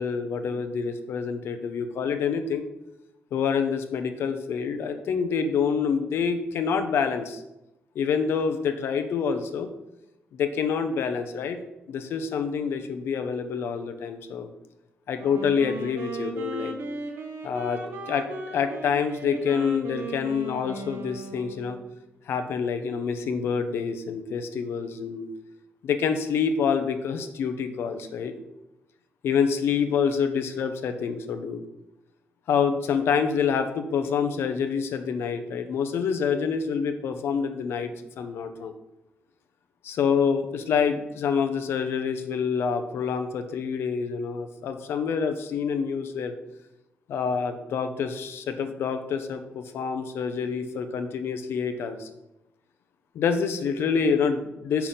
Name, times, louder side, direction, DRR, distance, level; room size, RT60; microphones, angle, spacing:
voice 1, 0.0-2.7 3.3-7.4 7.9-9.7 10.3-11.6 11.9-14.5 15.1-16.7 17.4-17.8 18.1-21.8 22.3-25.3 25.8-28.3 29.2-31.6 32.5-38.7 39.8-46.3 47.1-52.1 53.1-54.9, left 6 dB, 70° left, 7 dB, 0.8 m, -27 dB
Wind instrument woodwind instrument, 15.1-21.9, right 2 dB, 70° right, 1.5 m, -37 dB
6.9 x 5.9 x 5.7 m, 0.93 s
wide cardioid pair, 165°, 4 cm